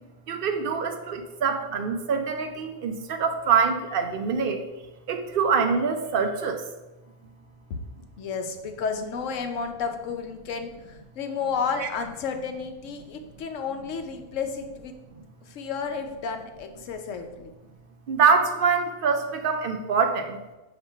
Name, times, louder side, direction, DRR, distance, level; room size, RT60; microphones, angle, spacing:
voice 1, 0.3-4.6 5.1-6.6 11.8-11.9 18.1-20.4, right 5 dB, 60° right, 6 dB, 0.5 m, -24 dB
voice 2, 8.2-14.9 15.4-17.5, left 5 dB, 70° left, 6 dB, 1.0 m, -32 dB
7.3 x 2.9 x 4.5 m, 1.1 s
omnidirectional pair, 1.4 m